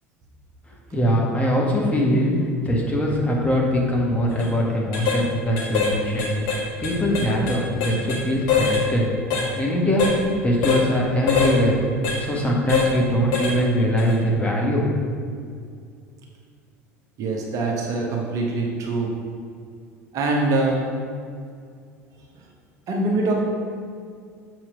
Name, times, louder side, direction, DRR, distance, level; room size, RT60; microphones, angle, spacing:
voice 1, 0.9-2.3 2.6-6.3 6.8-9.0 9.6-10.0 10.4-11.8 12.2-14.8, equal, 15° left, -3 dB, 1.7 m, -22 dB
sound 1, 4.3-4.5 4.9-5.2 5.6-5.9 6.2-8.2 8.5-8.8 9.3-9.5 10.0-10.2 10.6-10.8 11.3-11.6 12.0-12.2 12.7-12.9 13.3-13.6 14.0-14.1, left 5 dB, 60° left, 1.6 m, -23 dB
voice 2, 17.2-19.2 20.1-20.8 22.4-22.5 22.9-23.4, right 2 dB, 45° right, -1 dB, 1.2 m, -23 dB
6.9 x 4.6 x 5.2 m, 2.2 s
figure-of-eight pair, 70°, 8 cm